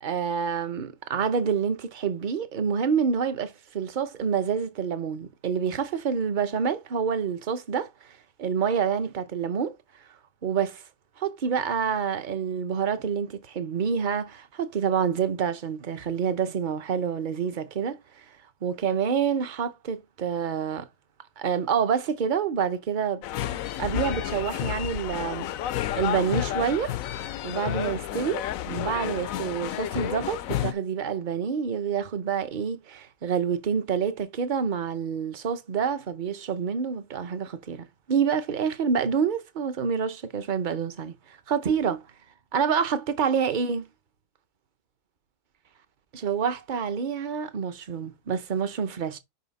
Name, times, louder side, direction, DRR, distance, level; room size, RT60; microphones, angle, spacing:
voice 1, 0.0-7.9 8.4-9.7 10.4-10.8 11.2-18.0 18.6-20.9 21.4-23.2 23.8-25.5 25.9-26.9 27.4-41.2 41.5-42.0 42.5-43.9 46.1-49.2, right 7 dB, 45° right, 0.8 m, -27 dB
sound 1, 23.2-30.7, left 12 dB, 80° left, 1.0 m, -31 dB
5.7 x 5.4 x 4.0 m
omnidirectional pair, 1.4 m